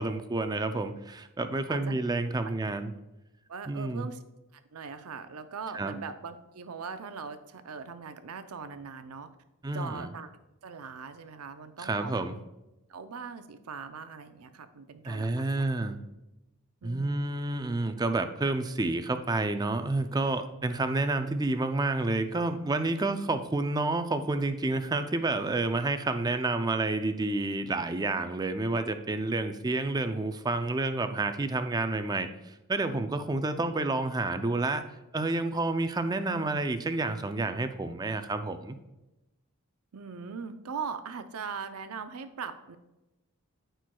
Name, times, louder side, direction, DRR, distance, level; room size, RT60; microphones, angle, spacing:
voice 1, 0.0-2.9 3.7-4.1 5.7-5.9 9.6-10.1 11.8-12.3 15.1-16.0 16.8-34.8 35.1-38.8, right 2 dB, 20° right, 9 dB, 0.4 m, -29 dB
voice 2, 1.7-2.0 3.5-4.2 4.5-9.3 9.7-10.3 10.6-12.2 12.9-15.7 16.8-17.4 39.9-42.8, right 5 dB, 85° right, 10 dB, 0.6 m, -40 dB
13.5 x 4.5 x 2.3 m, 0.98 s
head